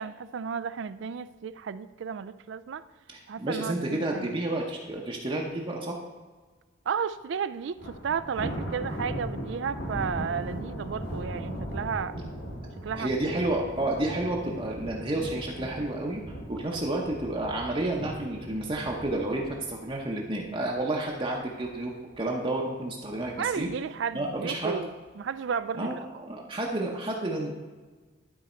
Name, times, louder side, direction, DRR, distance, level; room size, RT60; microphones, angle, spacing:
voice 1, 0.0-2.8 3.3-4.4 6.9-12.1 12.8-13.4 16.7-16.8 23.4-24.9 25.2-26.0, right 6 dB, 60° right, 14 dB, 0.3 m, -33 dB
voice 2, 3.1-6.0 12.9-16.2 16.5-21.9 22.2-23.7 24.1-24.8 25.7-27.5, right 2 dB, 25° right, -1 dB, 0.7 m, -30 dB
Thunder, 7.8-21.1 21.4-21.7 22.1-22.2 23.1-23.7, equal, 60° left, 1.7 m, -38 dB
11.5 x 4.1 x 4.3 m, 1.4 s
head